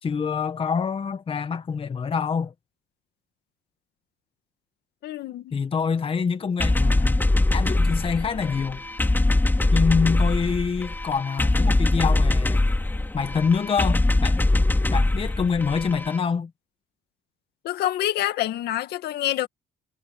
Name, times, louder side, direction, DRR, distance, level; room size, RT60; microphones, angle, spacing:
voice 1, 0.0-2.5 5.5-7.2 7.5-8.8 9.7-12.6 13.1-14.5 14.9-16.5, left 6 dB, 35° left, 1.5 m, -26 dB
voice 2, 5.0-5.5 17.6-19.5, left 13 dB, 75° left, 2.0 m, -27 dB
sound 1, 6.6-16.2, left 2 dB, 10° left, 2.9 m, -22 dB
cardioid pair, 110°, 17 cm